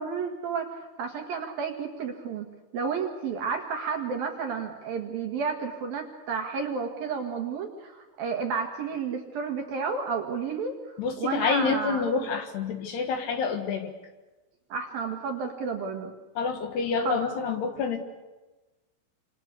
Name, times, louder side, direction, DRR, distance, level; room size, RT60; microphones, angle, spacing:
voice 1, 0.0-10.7 11.2-12.3 14.7-16.1 17.0-17.2, right 5 dB, 60° right, 4 dB, 3.0 m, -31 dB
voice 2, 11.0-13.9 16.4-18.0, left 5 dB, 65° left, 6 dB, 3.4 m, -28 dB
28.5 x 27.0 x 6.8 m, 1.1 s
omnidirectional pair, 5.7 m